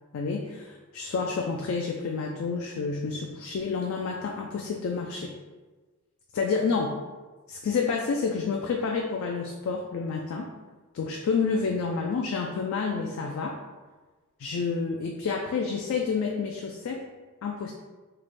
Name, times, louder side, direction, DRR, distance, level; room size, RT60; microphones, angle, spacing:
voice 1, 0.1-5.3 6.3-7.0 7.5-10.5 10.9-13.6 14.4-17.1 17.4-17.7, left 5 dB, 60° left, 1 dB, 0.3 m, -29 dB
3.1 x 2.1 x 4.1 m, 1.3 s
head